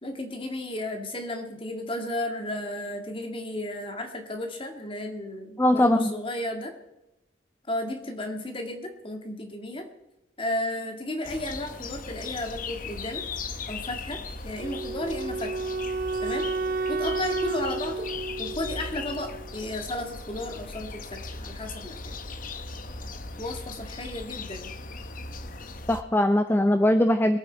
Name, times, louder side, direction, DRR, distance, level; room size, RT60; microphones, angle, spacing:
voice 1, 0.0-6.7 7.7-9.9 10.4-13.2 13.7-15.5 16.2-16.5 16.9-18.1 18.4-22.0 23.4-24.7, left 1 dB, 30° left, 4 dB, 2.0 m, -33 dB
voice 2, 5.6-6.1 25.9-27.4, left 1 dB, 10° left, 9 dB, 0.5 m, -21 dB
sound 1, 11.2-26.0, left 4 dB, 50° left, 0.9 m, -38 dB
Wind instrument woodwind instrument, 14.6-19.6, right 3 dB, 50° right, 0.4 m, -31 dB
23.0 x 8.9 x 4.5 m, 0.93 s
head